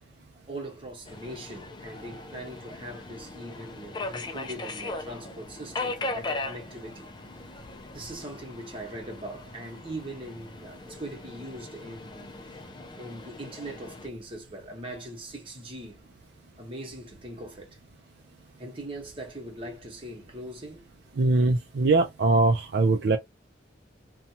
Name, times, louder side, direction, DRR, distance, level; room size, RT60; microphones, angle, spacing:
voice 1, 0.5-7.1 7.9-12.3 12.9-16.0 16.6-17.8 18.6-20.9, right 1 dB, 30° right, 1.1 m, -41 dB
Subway metro underground, 1.1-14.1, left 2 dB, 25° left, 0.4 m, -39 dB
voice 2, 21.2-23.2, right 3 dB, 65° right, 0.4 m, -22 dB
2.7 x 2.3 x 2.7 m
head